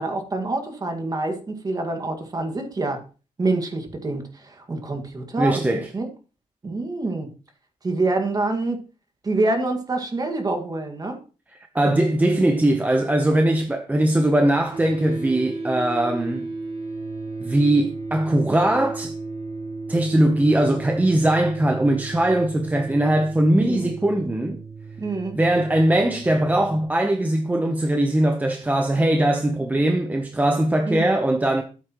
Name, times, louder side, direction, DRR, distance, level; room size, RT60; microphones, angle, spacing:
voice 1, 0.0-3.0 3.4-6.1 6.6-7.3 7.8-8.8 9.2-11.2 23.6-23.9 25.0-25.4 30.9-31.2, right 2 dB, 30° right, 1.8 m, -26 dB
voice 2, 5.4-5.9 11.7-16.5 17.4-19.1 19.9-24.6 25.3-31.6, right 1 dB, 10° right, 0.8 m, -20 dB
sound 1, 14.7-26.8, right 3 dB, 45° right, 4.6 m, -34 dB
12.5 x 8.5 x 3.0 m
cardioid pair, 140°, 14 cm